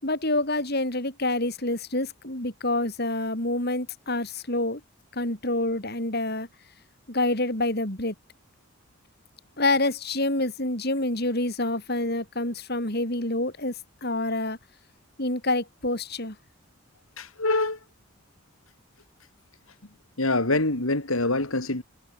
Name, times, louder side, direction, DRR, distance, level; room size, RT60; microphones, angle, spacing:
voice 1, 0.0-4.8 5.1-6.5 7.1-8.1 9.6-13.8 14.0-14.6 15.2-16.4, left 2 dB, 45° left, 4.7 m, -27 dB
voice 2, 17.2-17.8 20.2-21.8, left 2 dB, 75° left, 3.5 m, -25 dB
head